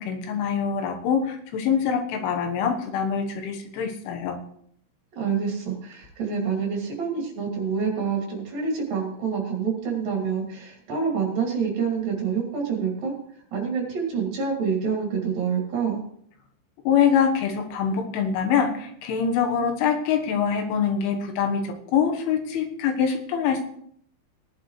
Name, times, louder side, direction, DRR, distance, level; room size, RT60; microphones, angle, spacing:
voice 1, 0.0-4.4 16.9-23.6, left 7 dB, 80° left, 4 dB, 3.7 m, -24 dB
voice 2, 5.1-13.1 13.5-16.0, right 6 dB, 50° right, 0 dB, 4.0 m, -27 dB
19.0 x 10.5 x 3.2 m, 0.67 s
omnidirectional pair, 5.6 m